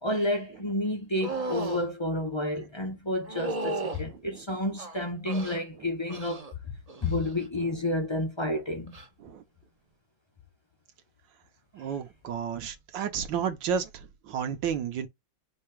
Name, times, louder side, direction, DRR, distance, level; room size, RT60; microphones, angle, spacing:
voice 1, 0.0-6.5 7.0-8.9, left 1 dB, 45° left, 0.3 m, -30 dB
sound 1, 1.2-1.8 3.3-4.0 4.8-5.6 6.1-6.5 6.9-7.3 8.9-9.1, right 2 dB, 45° right, 0.4 m, -34 dB
voice 2, 4.1-4.4 7.6-7.7 9.2-9.4 11.7-15.1, right 7 dB, 70° right, 1.4 m, -32 dB
5.2 x 2.8 x 3.3 m
omnidirectional pair, 2.1 m